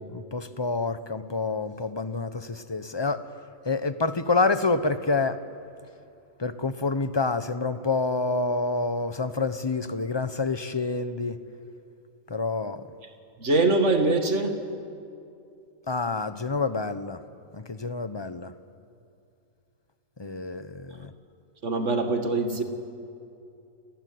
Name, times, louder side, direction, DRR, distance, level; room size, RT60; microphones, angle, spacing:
voice 1, 0.1-3.2 3.6-5.4 6.4-11.4 12.3-12.9 15.9-17.2 17.5-18.5 20.2-21.1, left 3 dB, 20° left, 12 dB, 0.8 m, -28 dB
voice 2, 13.4-14.6 21.6-22.6, right 2 dB, 55° right, 6 dB, 2.5 m, -23 dB
29.5 x 20.0 x 9.5 m, 2.6 s
omnidirectional pair, 1.5 m